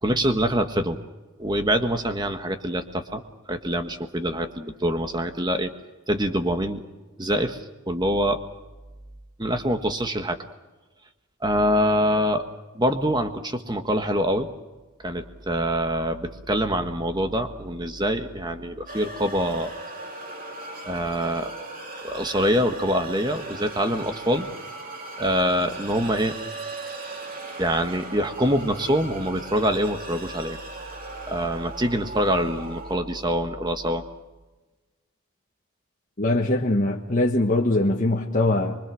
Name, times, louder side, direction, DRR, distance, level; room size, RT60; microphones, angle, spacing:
voice 1, 0.0-1.0 1.4-3.2 3.5-5.7 6.1-6.8 7.2-7.6 7.9-8.4 9.4-10.4 11.4-12.4 12.7-14.5 15.0-19.7 20.8-21.5 22.0-24.5 25.2-26.3 27.6-30.6 31.3-34.0, equal, 20° right, 7 dB, 1.5 m, -25 dB
sound 1, 18.9-33.0, right 2 dB, 40° right, 2.8 m, -38 dB
voice 2, 36.2-38.8, left 2 dB, 35° left, -2 dB, 1.5 m, -22 dB
24.5 x 24.0 x 6.3 m, 1.2 s
head